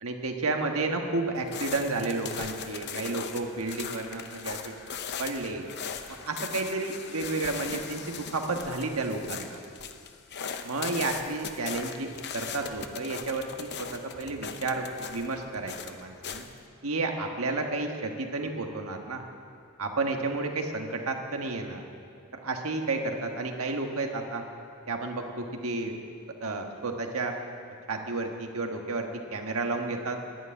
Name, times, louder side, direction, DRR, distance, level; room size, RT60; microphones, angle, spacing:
voice 1, 0.0-4.7 5.2-5.7 6.2-9.6 10.6-16.4 16.8-19.2 19.8-21.8 22.3-24.4 24.9-26.0 26.4-27.3 27.9-30.2, right 3 dB, 65° right, 3 dB, 1.4 m, -31 dB
sound 1, 1.4-16.6, left 6 dB, 50° left, 0.8 m, -39 dB
11.5 x 11.0 x 9.0 m, 2.3 s
head